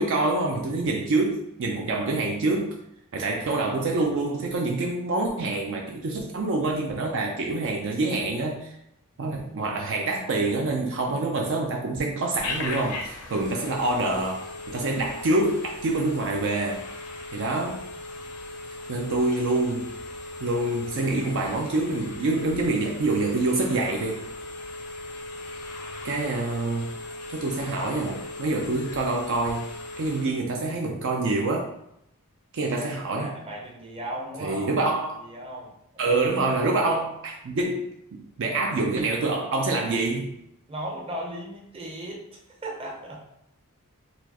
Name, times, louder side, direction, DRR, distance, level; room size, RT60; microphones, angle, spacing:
voice 1, 0.0-2.8 3.1-8.7 9.2-16.9 17.3-17.8 18.9-20.0 20.4-24.2 26.0-26.9 27.3-29.7 30.0-31.7 32.5-33.4 34.4-35.3 36.0-40.3, right 2 dB, 55° right, 1 dB, 0.4 m, -26 dB
Telephone, 12.3-30.4, left 2 dB, 75° left, 0.6 m, -38 dB
voice 2, 13.4-13.7 33.1-34.7 35.2-36.2 40.7-43.2, right 1 dB, 25° right, -2 dB, 0.7 m, -37 dB
4.1 x 2.3 x 2.8 m, 0.79 s
head